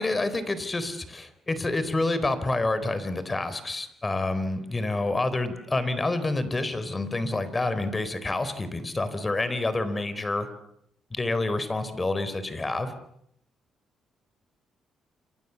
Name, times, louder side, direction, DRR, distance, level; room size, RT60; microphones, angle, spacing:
voice 1, 0.0-10.5 11.1-12.9, left 2 dB, 20° left, 13 dB, 4.2 m, -28 dB
29.0 x 28.0 x 7.2 m, 0.72 s
cardioid pair, 90°, 0 cm